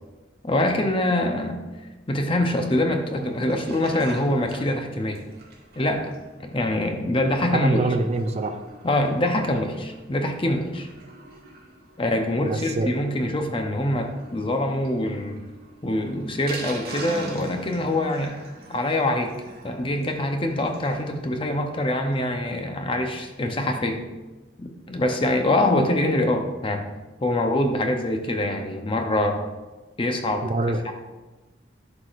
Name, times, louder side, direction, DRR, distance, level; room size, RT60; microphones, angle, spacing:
voice 1, 0.4-1.6 2.1-5.2 5.8-6.1 6.4-7.8 8.8-10.9 12.0-15.4 15.8-18.4 18.7-19.3 19.6-24.0 24.6-26.9 27.2-29.4 30.0-30.5 30.8-30.9, left 1 dB, 30° left, 4 dB, 0.6 m, -24 dB
Sink (filling or washing), 3.0-21.0 21.4-21.5 21.7-21.8 22.1-22.2, right 2 dB, 55° right, 1.7 m, -43 dB
voice 2, 7.6-8.6 12.4-12.9 30.4-30.8, right 2 dB, 35° right, 7 dB, 0.4 m, -25 dB
11.0 x 4.8 x 2.5 m, 1.2 s
head